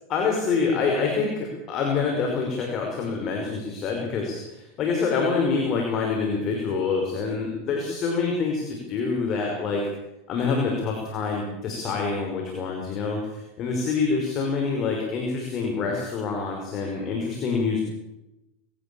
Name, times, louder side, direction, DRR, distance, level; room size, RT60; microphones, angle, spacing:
voice 1, 0.1-9.9 10.3-17.8, left 4 dB, 40° left, 1 dB, 5.6 m, -26 dB
21.5 x 18.0 x 7.2 m, 0.93 s
hypercardioid pair, 115°, 0 cm